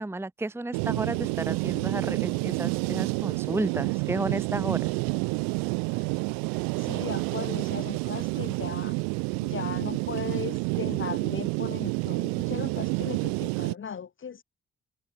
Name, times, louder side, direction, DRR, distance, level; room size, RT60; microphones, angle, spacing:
voice 1, 0.0-4.9, right 2 dB, 5° right, 0.9 m, -32 dB
sound 1, 0.7-13.7, right 36 dB, 80° right, 0.8 m, -29 dB
voice 2, 6.8-9.0 9.4-14.4, left 7 dB, 35° left, 0.8 m, -37 dB
hypercardioid pair, 40°, 34 cm